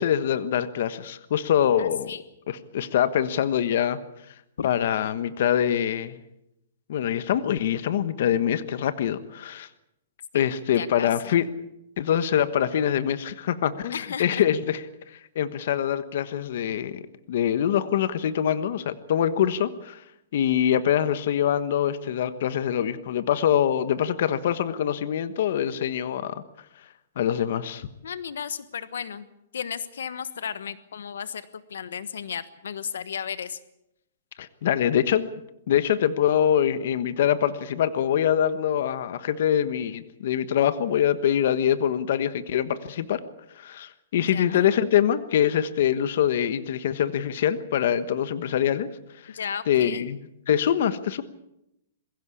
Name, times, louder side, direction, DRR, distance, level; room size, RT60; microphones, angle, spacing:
voice 1, 0.0-2.1 2.5-4.0 4.6-6.2 6.9-9.7 10.3-11.5 12.0-14.8 15.3-17.0 17.3-20.0 20.3-26.4 27.2-27.9 34.4-35.3 35.7-43.2 43.6-48.9 49.2-49.3 49.7-51.2, left 9 dB, 55° left, 13 dB, 1.3 m, -24 dB
voice 2, 1.8-2.2 4.6-4.7 10.3-10.5 10.8-11.3 13.9-14.4 28.0-29.3 29.5-31.4 31.7-33.6 44.3-44.7 49.3-50.1, left 7 dB, 85° left, 15 dB, 1.3 m, -34 dB
22.0 x 16.0 x 8.6 m, 0.83 s
hypercardioid pair, 165°, 0 cm